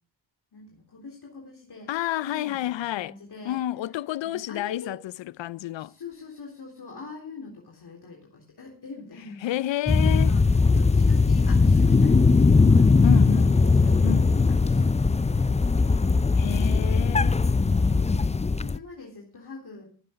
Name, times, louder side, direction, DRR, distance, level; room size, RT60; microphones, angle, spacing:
voice 1, 0.5-1.9 2.2-3.6 4.2-4.9 5.8-9.6 10.0-14.0 14.6-16.2 18.0-19.9, left 4 dB, 60° left, 3.7 m, -44 dB
voice 2, 1.9-3.1 3.4-5.1 5.4-5.9 9.4-10.3 13.0-13.5 14.0-14.3 16.4-17.4, left 14 dB, 85° left, 0.6 m, -30 dB
sound 1, 9.9-18.8, left 4 dB, 15° left, 0.5 m, -19 dB
16.5 x 7.8 x 5.1 m
cardioid pair, 65°, 43 cm